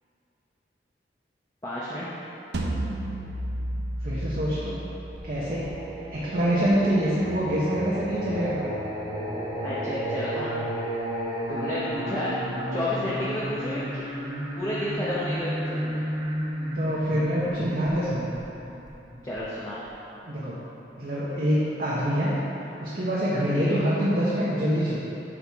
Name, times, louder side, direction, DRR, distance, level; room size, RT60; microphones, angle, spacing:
voice 1, 1.6-2.1 9.6-10.6 11.5-12.3 12.7-14.0 14.6-16.0 19.2-19.8 23.5-23.8, left 1 dB, 20° left, -9 dB, 0.8 m, -31 dB
sound 1, 2.5-7.6, right 1 dB, 75° right, 0.6 m, -34 dB
voice 2, 4.0-4.8 5.2-5.7 6.1-8.8 16.7-18.3 20.3-20.6 21.0-22.4 22.8-25.0, equal, 50° right, -8 dB, 1.0 m, -25 dB
Singing, 5.1-19.9, equal, 25° right, 1.0 m, -33 dB
8.5 x 5.6 x 3.6 m, 3.0 s
head